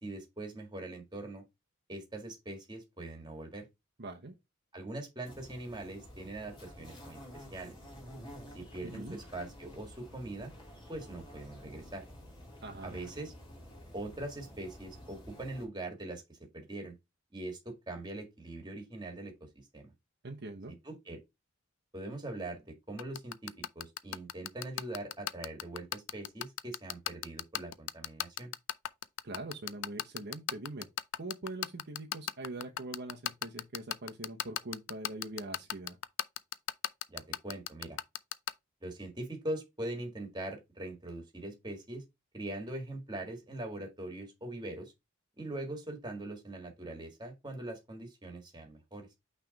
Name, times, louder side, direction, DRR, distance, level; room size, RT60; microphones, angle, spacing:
voice 1, 0.0-1.4 1.9-3.7 4.7-7.8 8.5-10.5 10.9-12.0 12.8-13.3 13.9-17.0 17.3-19.9 20.8-21.2 21.9-28.5 37.1-38.0 38.8-42.0 42.3-44.9 45.4-49.1, right 2 dB, 20° right, 1.7 m, -42 dB
voice 2, 4.0-4.3 8.8-9.2 12.6-13.0 20.2-20.7 29.2-30.9 31.2-36.0, right 2 dB, 55° right, 0.9 m, -43 dB
sound 1, 5.2-15.6, equal, 25° left, 2.7 m, -51 dB
sound 2, 23.0-38.5, left 12 dB, 70° left, 0.4 m, -34 dB
5.9 x 3.4 x 5.1 m
head